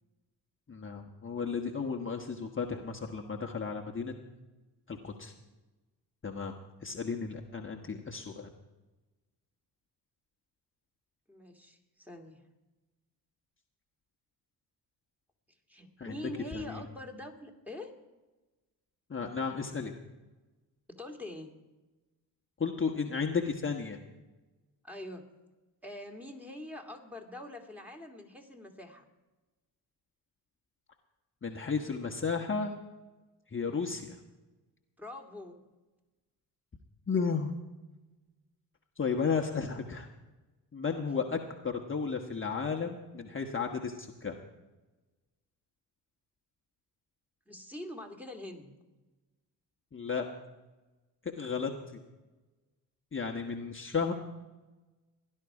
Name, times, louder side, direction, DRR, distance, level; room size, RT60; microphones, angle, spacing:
voice 1, 0.7-4.1 4.9-5.3 6.2-6.5 6.8-8.5 16.0-16.2 16.5-16.8 19.1-19.9 22.6-24.0 31.4-32.8 33.5-34.2 37.1-37.5 39.0-40.1 40.7-41.4 41.6-44.3 49.9-50.3 51.4-52.0 53.1-54.1, left 5 dB, 25° left, 2 dB, 1.4 m, -33 dB
voice 2, 11.3-12.4 15.7-17.9 20.9-21.5 24.8-25.2 25.8-29.0 33.6-33.9 35.0-35.6 47.5-48.8, left 1 dB, 5° right, 2 dB, 2.5 m, -44 dB
17.0 x 11.0 x 4.9 m, 1.1 s
hypercardioid pair, 50°, 47 cm